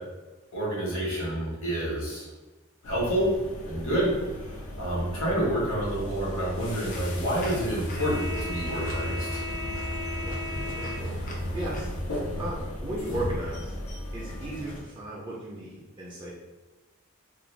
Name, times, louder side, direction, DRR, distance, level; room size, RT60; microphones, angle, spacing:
voice 1, 0.5-2.3 2.8-3.3 3.6-9.4, right 1 dB, 70° left, -6 dB, 1.3 m, -29 dB
sound 1, 2.8-14.8, left 1 dB, 90° left, 0.6 m, -36 dB
sound 2, 6.8-12.0, equal, 40° left, 0.5 m, -35 dB
voice 2, 10.2-13.7 14.1-16.3, right 1 dB, 25° right, -5 dB, 0.4 m, -36 dB
2.5 x 2.2 x 3.1 m, 1.2 s
head